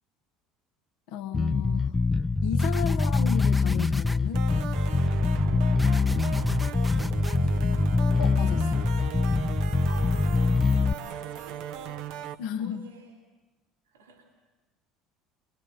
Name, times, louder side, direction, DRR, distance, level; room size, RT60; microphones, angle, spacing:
voice 1, 1.1-1.9 2.4-4.5 8.2-8.9 12.4-12.8, left 9 dB, 65° left, 6 dB, 1.5 m, -33 dB
Bass guitar, 1.3-10.9, left 4 dB, 15° left, 0.9 m, -24 dB
sound 1, 2.6-4.2 5.8-7.4, equal, ahead, 1.0 m, -41 dB
sound 2, 4.3-12.4, right 10 dB, 65° right, 1.0 m, -37 dB
voice 2, 5.9-8.0 9.8-10.6 11.0-12.2 12.6-13.2 13.9-14.3, right 3 dB, 85° right, -1 dB, 3.6 m, -51 dB
24.5 x 23.0 x 8.1 m, 1.2 s
hypercardioid pair, 65°, 0 cm